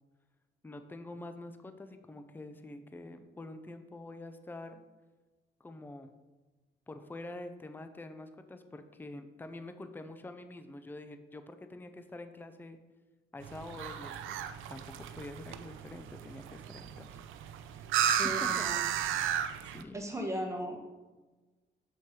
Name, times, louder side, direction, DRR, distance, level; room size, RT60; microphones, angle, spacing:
voice 1, 0.6-4.8 5.6-6.1 6.9-12.8 13.3-14.2 14.7-17.2 17.6-18.8 19.7-20.0, left 2 dB, 10° left, 9 dB, 0.5 m, -46 dB
sound 1, 13.4-19.8, right 9 dB, 85° right, 0.5 m, -34 dB
voice 2, 18.0-18.8 19.9-20.8, right 1 dB, 15° right, 2 dB, 1.3 m, -37 dB
7.4 x 4.4 x 4.7 m, 1.2 s
cardioid pair, 90°, 20 cm